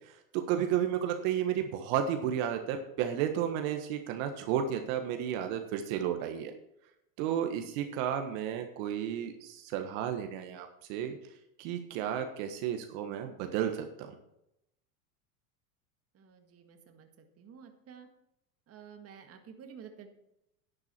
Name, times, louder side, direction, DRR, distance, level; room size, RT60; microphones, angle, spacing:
voice 1, 0.1-6.5 7.2-11.2 11.6-14.1, right 9 dB, 60° right, 5 dB, 1.5 m, -32 dB
voice 2, 16.1-17.1 17.4-18.1 18.7-20.1, right 7 dB, 30° right, 5 dB, 1.8 m, -51 dB
11.0 x 9.6 x 4.5 m, 0.83 s
supercardioid pair, 125°, 46 cm